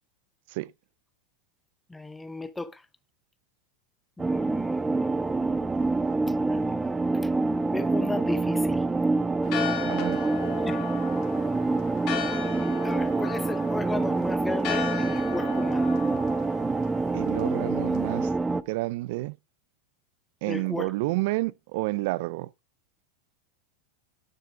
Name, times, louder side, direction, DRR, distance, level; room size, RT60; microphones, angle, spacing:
voice 1, 1.9-2.8 4.2-5.8 6.4-7.3 7.7-8.8 10.7-10.9 12.2-15.9 20.5-20.9, left 2 dB, 10° left, 0.9 m, -36 dB
sound 1, 4.2-18.6, right 3 dB, 15° right, 0.6 m, -26 dB
Church bell, 9.4-18.3, left 9 dB, 50° left, 2.4 m, -37 dB
voice 2, 9.8-10.2 17.1-18.4 18.7-19.4 20.4-22.5, right 20 dB, 65° right, 0.4 m, -30 dB
10.0 x 6.8 x 3.6 m
hypercardioid pair, 110°, 0 cm